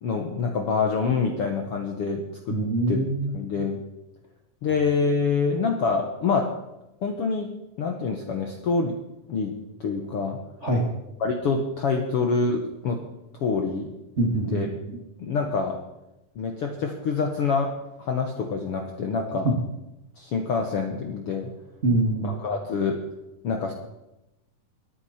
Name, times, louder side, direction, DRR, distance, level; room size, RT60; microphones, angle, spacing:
voice 1, 0.0-2.6 2.9-3.0 3.3-3.8 4.6-6.5 7.0-7.5 7.8-9.0 9.3-9.5 9.8-10.4 11.2-13.0 13.4-13.9 14.2-14.7 15.2-15.8 16.3-19.5 20.2-21.5 22.2-23.0 23.4-23.7, left 4 dB, 65° left, 3 dB, 1.5 m, -26 dB
voice 2, 2.5-3.3 10.6-10.8 14.2-14.6 14.9-15.0 19.4-19.5 21.8-22.3, right 2 dB, 30° right, 0 dB, 1.3 m, -24 dB
22.0 x 9.8 x 4.3 m, 0.96 s
omnidirectional pair, 4.0 m